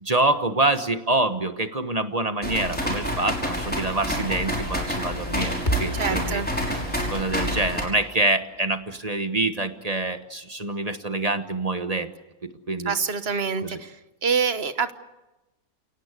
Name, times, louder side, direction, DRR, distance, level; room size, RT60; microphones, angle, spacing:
voice 1, 0.0-6.4 7.1-12.1 12.4-12.9 13.6-13.8, right 2 dB, 30° right, 9 dB, 1.1 m, -26 dB
sound 1, 2.4-7.8, equal, 5° left, 5.7 m, -28 dB
sound 2, 5.7-9.9, right 1 dB, 30° left, 2.7 m, -34 dB
voice 2, 6.0-6.5 12.9-14.0 14.2-14.9, right 6 dB, 45° right, 11 dB, 1.3 m, -25 dB
28.5 x 18.0 x 8.3 m, 1.0 s
omnidirectional pair, 1.5 m